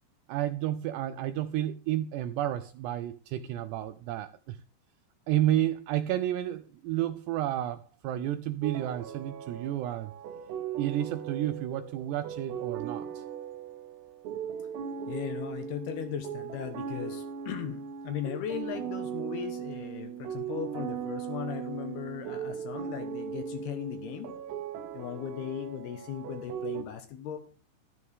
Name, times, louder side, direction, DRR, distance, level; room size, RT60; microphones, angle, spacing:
voice 1, 0.3-4.6 5.3-10.1 10.8-13.2, right 13 dB, 85° right, 2.4 m, -31 dB
sound 1, 8.6-26.8, right 8 dB, 70° right, 3.2 m, -38 dB
voice 2, 15.1-24.3 24.9-27.4, left 9 dB, 70° left, 2.6 m, -37 dB
13.0 x 11.0 x 3.7 m
omnidirectional pair, 5.5 m